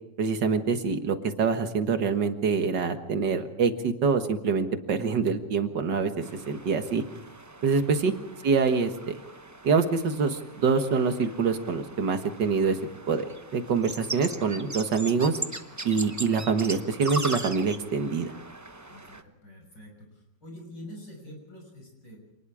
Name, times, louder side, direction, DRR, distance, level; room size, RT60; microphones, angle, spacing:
voice 1, 0.2-7.0 7.6-8.1 8.4-9.2 9.6-12.8 13.1-13.3 13.5-15.4 15.8-18.3, right 5 dB, 70° right, 7 dB, 2.1 m, -25 dB
sound 1, 6.2-19.2, right 2 dB, 20° right, 0.5 m, -40 dB
voice 2, 18.9-22.2, equal, 70° left, 2 dB, 6.9 m, -46 dB
26.5 x 20.0 x 4.9 m, 0.87 s
omnidirectional pair, 2.0 m